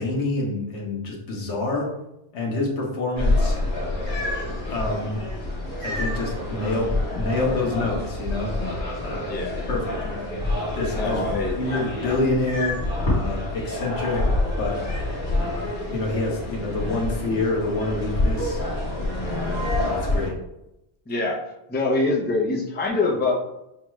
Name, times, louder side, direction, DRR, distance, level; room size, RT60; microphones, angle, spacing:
voice 1, 0.0-1.9 2.3-3.6 4.5-5.2 5.8-8.5 9.0-9.4 9.7-10.3 10.8-14.3 14.6-14.8 15.4-18.6 19.8-20.3, left 2 dB, 85° left, -1 dB, 1.3 m, -27 dB
sound 1, 3.2-20.3, left 1 dB, 50° left, 1.5 m, -27 dB
voice 2, 9.2-9.7 10.9-11.6 21.1-23.3, left 3 dB, 15° left, -1 dB, 0.4 m, -24 dB
6.2 x 2.3 x 3.1 m, 0.88 s
omnidirectional pair, 1.2 m